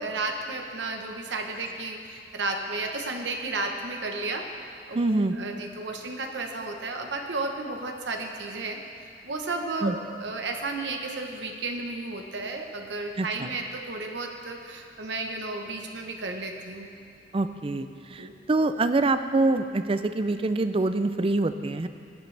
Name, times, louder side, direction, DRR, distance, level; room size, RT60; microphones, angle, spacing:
voice 1, 0.0-4.5 4.9-8.8 9.2-16.9 18.2-18.3, right 3 dB, 70° right, 3 dB, 1.0 m, -33 dB
voice 2, 4.9-5.4 9.8-10.0 13.2-13.5 17.3-21.9, right 2 dB, 30° right, 10 dB, 0.4 m, -25 dB
18.0 x 9.7 x 3.3 m, 2.3 s
head